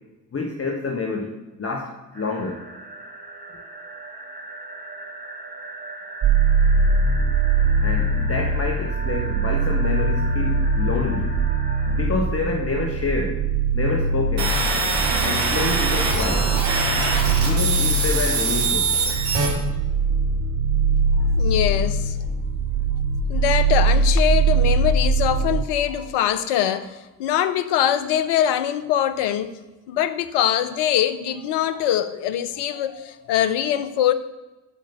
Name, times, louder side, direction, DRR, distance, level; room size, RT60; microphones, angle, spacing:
voice 1, 0.3-2.6 3.5-3.6 7.8-11.4 11.8-13.4 13.7-14.6 15.2-16.5 17.4-18.9, left 3 dB, 35° left, 1 dB, 1.5 m, -28 dB
sound 1, 2.1-12.1, right 2 dB, 20° right, 2.9 m, -37 dB
sound 2, 6.2-25.6, right 3 dB, 40° right, 0.9 m, -22 dB
sound 3, 14.4-19.5, right 3 dB, 70° right, 3.2 m, -23 dB
voice 2, 21.4-22.2 23.3-29.5 29.9-34.1, left 10 dB, 70° left, 13 dB, 0.9 m, -23 dB
11.5 x 5.2 x 6.9 m, 1.1 s
hypercardioid pair, 45°, 43 cm